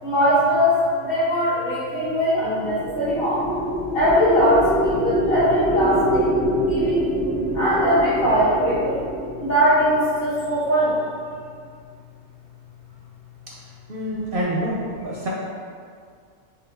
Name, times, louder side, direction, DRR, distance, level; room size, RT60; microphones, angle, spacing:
voice 1, 0.0-3.4 3.9-6.3 6.7-7.1 7.5-9.0 9.4-11.0, equal, 50° left, -8 dB, 1.3 m, -20 dB
sound 1, 2.4-10.9, equal, 15° left, 0.5 m, -25 dB
voice 2, 13.9-15.3, equal, 55° right, -4 dB, 0.7 m, -27 dB
6.5 x 2.6 x 2.6 m, 2.1 s
omnidirectional pair, 1.3 m